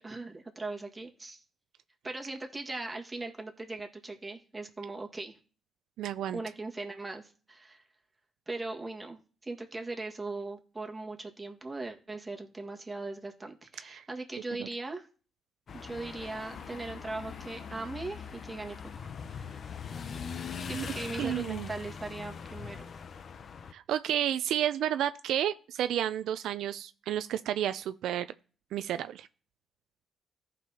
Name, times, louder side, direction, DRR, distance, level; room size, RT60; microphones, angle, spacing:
voice 1, 0.0-1.4 2.0-5.4 6.3-7.8 8.5-15.1 15.7-19.6 19.9-20.0 20.7-22.8, right 3 dB, 15° right, 1.7 m, -39 dB
voice 2, 6.0-6.4 13.9-14.0 14.6-14.7 20.7-20.8 21.2-21.7 23.7-28.3 28.7-29.3, right 11 dB, 80° right, 0.3 m, -31 dB
sound 1, 15.7-23.7, left 6 dB, 50° left, 0.6 m, -41 dB
14.5 x 5.3 x 2.8 m
cardioid pair, 90°, 0 cm